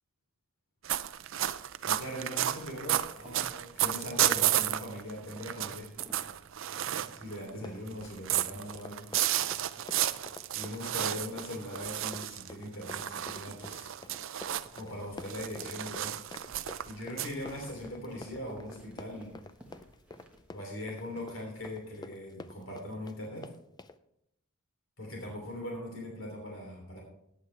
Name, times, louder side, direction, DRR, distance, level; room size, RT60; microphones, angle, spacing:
sound 1, 0.8-7.5 7.9-14.8 15.2-17.9, right 12 dB, 60° right, 0.5 m, -32 dB
voice 1, 1.8-5.9 7.1-9.1 10.5-13.9 14.7-16.2 16.8-19.4 20.5-23.5 25.0-27.0, left 1 dB, 65° left, -1 dB, 3.2 m, -40 dB
sound 2, 3.1-22.3, equal, 5° right, 1.4 m, -56 dB
Run, 7.5-24.0, left 2 dB, 20° left, 0.4 m, -48 dB
14.5 x 9.4 x 3.3 m, 0.80 s
head